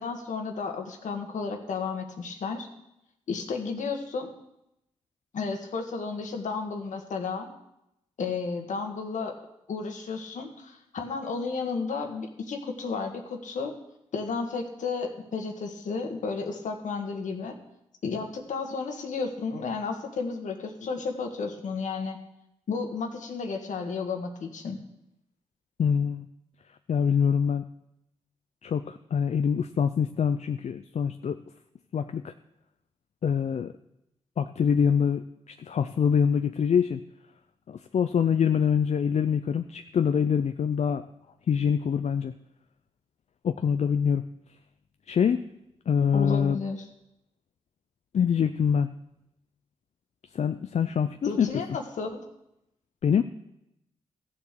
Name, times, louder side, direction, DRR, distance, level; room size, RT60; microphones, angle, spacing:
voice 1, 0.0-2.7 3.3-4.3 5.3-7.5 8.2-9.4 9.7-13.7 14.1-17.5 18.0-22.2 22.7-24.8 46.1-46.9 51.2-52.2, left 4 dB, 75° left, 4 dB, 1.6 m, -32 dB
voice 2, 25.8-26.3 26.9-27.6 28.6-31.4 31.9-32.3 33.2-33.7 34.4-37.0 37.7-41.0 41.5-42.3 43.4-44.2 45.1-45.4 45.9-46.6 48.1-48.9 50.3-51.5 53.0-53.2, left 7 dB, 60° left, 9 dB, 0.5 m, -25 dB
14.5 x 7.2 x 6.6 m, 0.85 s
supercardioid pair, 45°, 13 cm